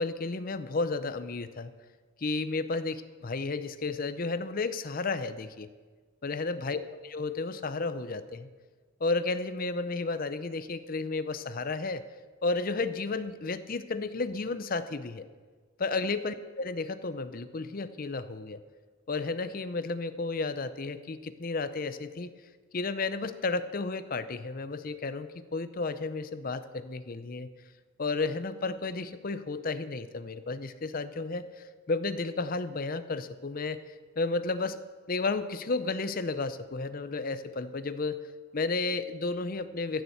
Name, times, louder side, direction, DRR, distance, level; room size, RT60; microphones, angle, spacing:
voice 1, 0.0-1.7 2.2-5.7 6.2-8.5 9.0-12.0 12.4-15.2 15.8-18.6 19.1-22.3 22.7-27.5 28.0-31.5 31.9-33.8 34.2-34.8 35.1-38.2 38.5-40.0, left 3 dB, 40° left, 12 dB, 0.6 m, -32 dB
14.5 x 7.0 x 7.9 m, 1.4 s
head